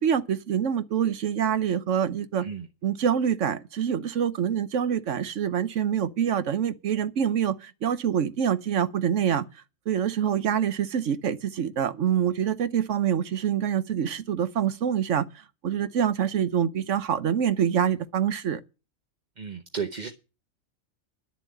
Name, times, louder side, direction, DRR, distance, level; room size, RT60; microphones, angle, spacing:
voice 1, 0.0-2.5 2.8-9.5 9.9-15.3 15.6-18.6, right 8 dB, 65° right, 1.2 m, -25 dB
voice 2, 19.4-20.1, right 6 dB, 35° right, 0.9 m, -33 dB
11.0 x 7.2 x 9.3 m
omnidirectional pair, 1.4 m